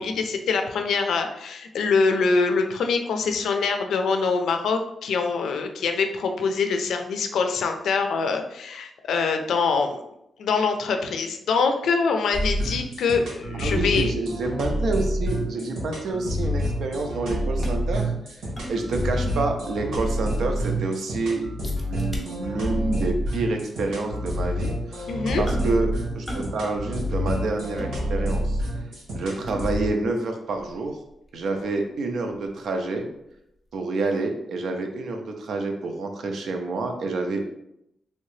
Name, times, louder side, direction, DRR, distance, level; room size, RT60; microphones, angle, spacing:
voice 1, 0.0-10.0 10.4-14.1 25.1-25.4, left 4 dB, 85° left, 5 dB, 0.4 m, -24 dB
sound 1, 12.3-29.9, equal, 85° right, 1.5 m, -28 dB
voice 2, 13.6-18.1 18.7-21.5 21.8-25.1 25.4-28.6 29.1-31.0 31.3-33.1 33.7-37.4, right 3 dB, 70° right, 4 dB, 0.5 m, -28 dB
sound 2, 17.4-19.7 20.1-20.2 20.6-21.0 21.6-22.7 23.0-23.2 23.9-24.0 25.5-25.9 26.3-26.6 26.9-28.5 29.0-29.9 30.5-33.3 33.7-33.8, equal, 10° left, 0.6 m, -39 dB
3.1 x 2.8 x 3.1 m, 0.80 s
wide cardioid pair, 165°, 0 cm